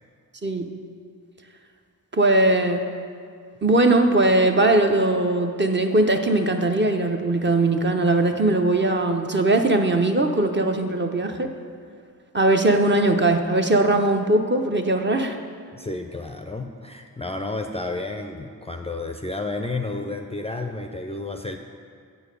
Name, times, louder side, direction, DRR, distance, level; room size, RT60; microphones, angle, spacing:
voice 1, 2.1-2.9 3.6-11.5 12.3-15.4, right 2 dB, 30° right, 4 dB, 0.7 m, -20 dB
voice 2, 15.7-21.6, left 2 dB, 15° left, 4 dB, 0.4 m, -31 dB
8.2 x 4.8 x 5.2 m, 2.2 s
cardioid pair, 45°, 36 cm